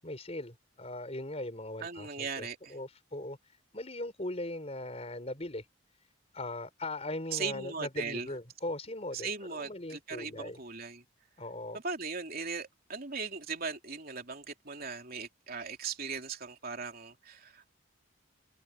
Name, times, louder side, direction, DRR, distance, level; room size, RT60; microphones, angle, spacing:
voice 1, 0.0-5.7 6.3-10.6 11.4-11.8, left 1 dB, 30° left, 5.0 m, -39 dB
voice 2, 1.8-2.7 7.3-8.3 9.1-11.0 11.8-17.7, right 5 dB, 45° right, 3.3 m, -38 dB
head